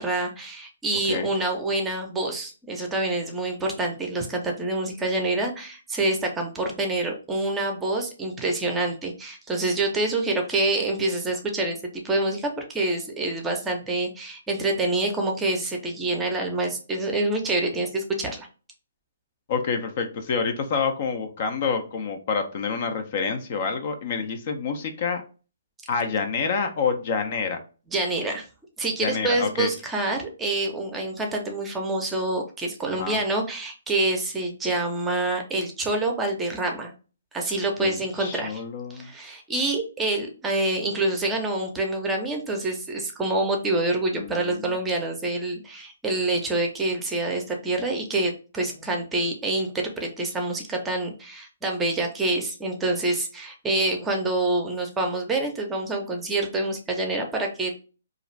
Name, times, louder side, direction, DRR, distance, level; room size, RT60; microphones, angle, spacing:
voice 1, 0.0-11.8 12.0-18.5 27.9-28.5 28.8-36.9 37.3-38.6 38.9-57.7, right 2 dB, 10° right, 2 dB, 0.6 m, -26 dB
voice 2, 19.5-25.2 25.9-27.6 29.0-29.7 33.0-33.2 37.8-39.1 44.1-44.8, left 5 dB, 45° left, 7 dB, 0.5 m, -28 dB
2.4 x 2.4 x 3.0 m, 0.35 s
hypercardioid pair, 145°, 0 cm